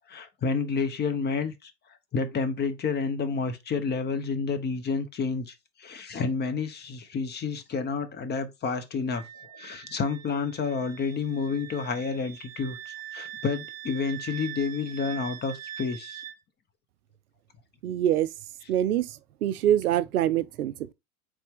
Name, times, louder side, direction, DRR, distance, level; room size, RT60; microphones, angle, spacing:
voice 1, 0.1-1.7 2.1-9.3 9.5-16.2, left 5 dB, 25° left, 0.7 m, -30 dB
Wind instrument woodwind instrument, 9.1-16.4, right 11 dB, 35° right, 1.0 m, -43 dB
voice 2, 17.8-18.3 18.7-20.9, right 11 dB, 85° right, 0.6 m, -25 dB
4.2 x 3.3 x 3.5 m
hypercardioid pair, 90°, 43 cm